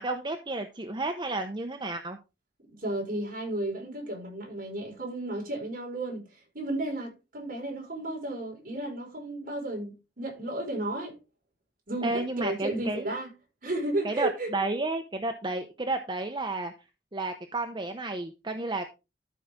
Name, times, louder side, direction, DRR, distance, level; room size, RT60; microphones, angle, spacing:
voice 1, 0.0-2.2 12.0-13.0 14.0-16.7 17.1-18.8, right 2 dB, 25° right, 0.9 m, -32 dB
voice 2, 2.7-11.2 11.9-13.3 13.6-14.5, right 1 dB, 55° right, 5.5 m, -33 dB
13.0 x 5.9 x 3.7 m
head